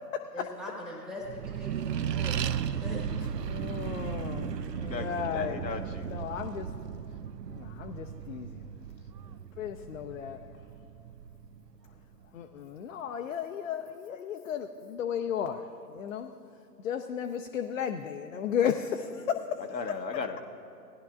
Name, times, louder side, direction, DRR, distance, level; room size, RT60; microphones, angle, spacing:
voice 1, 0.3-3.3 9.2-9.4, equal, ahead, -2 dB, 1.1 m, -42 dB
Accelerating revving vroom, 1.2-12.1, right 8 dB, 75° right, 0.6 m, -36 dB
voice 2, 3.4-5.6 6.1-6.7 7.5-8.6 9.6-10.4 12.3-15.6 15.9-16.3 16.8-19.6, left 8 dB, 50° left, 5 dB, 0.6 m, -34 dB
voice 3, 4.5-5.0 5.3-6.1 19.7-20.4, left 5 dB, 85° left, 5 dB, 1.1 m, -37 dB
19.0 x 10.5 x 2.4 m, 2.6 s
figure-of-eight pair, 130°, 49 cm